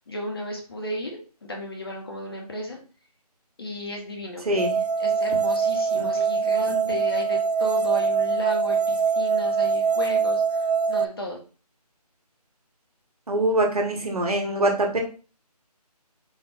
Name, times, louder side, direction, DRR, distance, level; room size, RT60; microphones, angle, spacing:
voice 1, 0.1-2.8 3.6-4.5 5.0-11.4, left 1 dB, 35° left, 0 dB, 0.7 m, -34 dB
voice 2, 4.4-4.8 6.0-6.2 6.8-6.9 13.3-15.0, right 1 dB, 65° right, 2 dB, 1.3 m, -24 dB
sound 1, 4.6-11.1, right 5 dB, 85° right, 0.4 m, -23 dB
4.3 x 2.4 x 3.5 m, 0.38 s
figure-of-eight pair, 165°, 21 cm